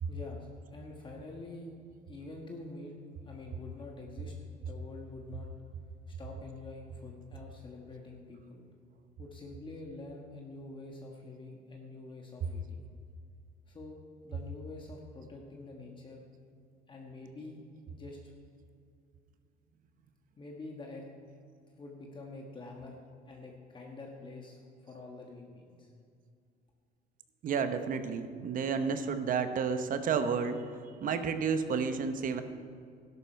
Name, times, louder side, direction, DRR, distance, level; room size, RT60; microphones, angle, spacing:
voice 1, 0.1-1.7 2.1-3.0 3.2-5.5 6.1-8.6 9.2-12.8 13.7-14.0 14.2-16.2 16.9-17.6 17.9-18.3 20.4-21.1 21.8-23.0 23.3-25.9, left 2 dB, 30° left, 0 dB, 1.5 m, -46 dB
voice 2, 27.4-30.6 31.0-32.4, right 6 dB, 55° right, 9 dB, 1.0 m, -31 dB
12.5 x 11.0 x 4.5 m, 2.3 s
cardioid pair, 110°, 17 cm